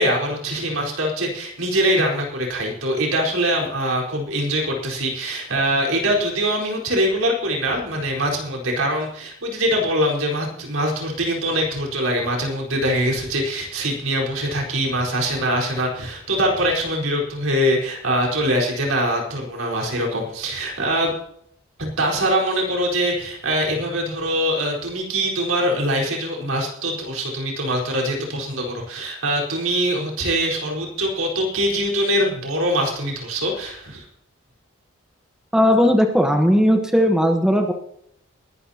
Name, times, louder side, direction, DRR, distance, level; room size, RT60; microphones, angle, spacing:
voice 1, 0.0-21.1 21.8-34.0, equal, 75° right, -1 dB, 4.5 m, -23 dB
voice 2, 35.5-37.7, equal, 5° right, 3 dB, 1.1 m, -17 dB
21.0 x 12.0 x 2.9 m, 0.71 s
head